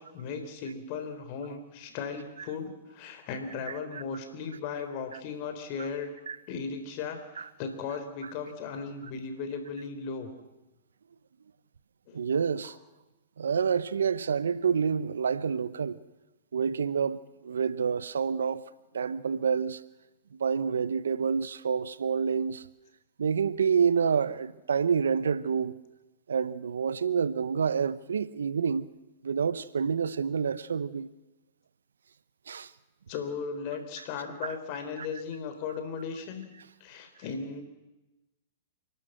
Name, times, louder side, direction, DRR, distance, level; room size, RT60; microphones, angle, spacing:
voice 1, 0.0-6.1 6.5-10.3 12.1-12.2 33.1-36.5 36.8-37.6, left 5 dB, 45° left, 3.8 m, -37 dB
voice 2, 12.1-12.8 13.4-16.0 16.5-18.7 18.9-19.8 20.4-22.6 23.2-25.7 26.3-28.9 29.2-31.1 32.5-32.7 35.0-35.1, right 6 dB, 80° right, 0.8 m, -28 dB
28.0 x 12.0 x 7.8 m
hypercardioid pair, 120°, 0 cm